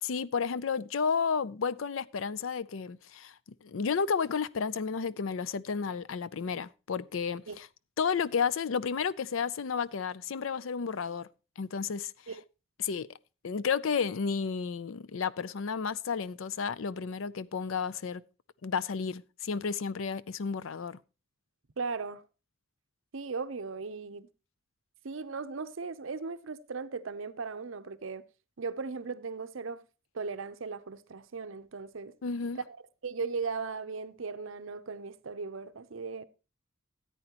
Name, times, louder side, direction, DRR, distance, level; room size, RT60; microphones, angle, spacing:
voice 1, 0.0-7.7 8.0-11.3 11.6-12.1 12.8-13.1 13.4-18.2 18.6-21.0 32.2-32.6, left 6 dB, 75° left, 0.5 m, -32 dB
voice 2, 21.8-22.2 23.1-24.3 25.0-28.2 28.6-29.8 30.1-32.1 33.0-36.2, right 4 dB, 75° right, 0.7 m, -37 dB
13.5 x 9.1 x 2.9 m
head